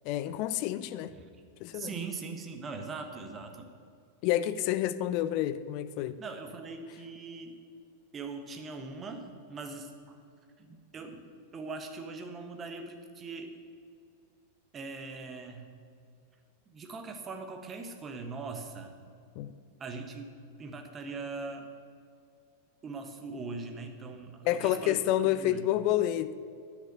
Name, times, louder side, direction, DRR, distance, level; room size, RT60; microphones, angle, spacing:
voice 1, 0.0-1.1 1.6-1.9 4.2-6.2 19.4-19.5 24.4-26.3, left 13 dB, 45° left, 0.5 m, -29 dB
voice 2, 1.7-3.7 6.2-7.6 8.1-10.2 10.6-13.5 14.7-15.7 16.7-18.9 19.8-20.3 20.6-21.7 22.8-25.7, right 4 dB, 25° right, 1.2 m, -41 dB
10.0 x 8.3 x 6.8 m
figure-of-eight pair, 90°, 0 cm